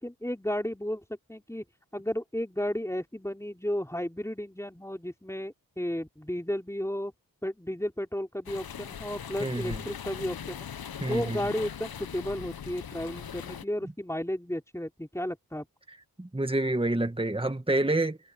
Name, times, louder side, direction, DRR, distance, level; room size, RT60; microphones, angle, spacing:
voice 1, 0.0-1.6 1.9-7.1 7.4-10.7 11.1-15.7, equal, 10° left, 4.8 m, -33 dB
sound 1, 8.5-13.6, left 8 dB, 75° left, 0.8 m, -40 dB
voice 2, 9.4-9.8 11.0-11.4 16.2-18.2, right 2 dB, 15° right, 1.8 m, -28 dB
cardioid pair, 50°, 37 cm